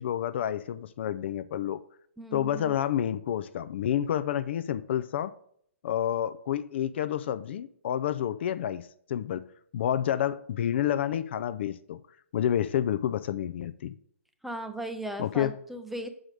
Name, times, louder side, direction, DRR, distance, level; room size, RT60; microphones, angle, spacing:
voice 1, 0.0-1.8 2.3-5.3 5.8-9.5 9.7-12.0 12.3-13.9 15.2-15.5, left 10 dB, 55° left, 0.4 m, -29 dB
voice 2, 2.2-2.7 14.4-16.1, right 1 dB, ahead, 0.5 m, -37 dB
6.3 x 4.9 x 5.1 m
hypercardioid pair, 140°, 7 cm